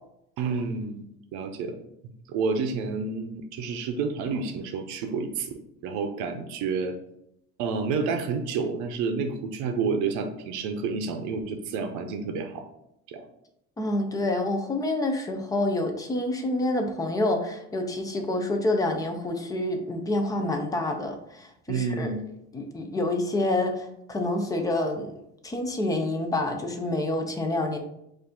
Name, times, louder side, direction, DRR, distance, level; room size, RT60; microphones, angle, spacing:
voice 1, 0.4-1.1 1.3-1.8 2.3-7.0 7.6-12.7 13.1-13.3 21.7-22.3, right 5 dB, 75° right, 6 dB, 0.6 m, -29 dB
voice 2, 13.8-22.2 22.5-25.2 25.4-27.8, left 2 dB, 15° left, 5 dB, 0.3 m, -27 dB
4.6 x 2.5 x 3.6 m, 0.79 s
cardioid pair, 165°, 30 cm